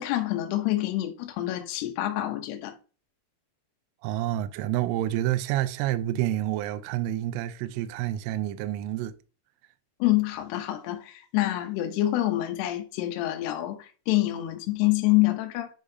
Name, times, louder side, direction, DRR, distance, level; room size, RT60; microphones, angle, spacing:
voice 1, 0.0-2.7 10.0-15.7, left 16 dB, 85° left, 2.3 m, -26 dB
voice 2, 4.0-9.1, right 13 dB, 85° right, 3.0 m, -28 dB
9.7 x 3.8 x 2.7 m
omnidirectional pair, 5.9 m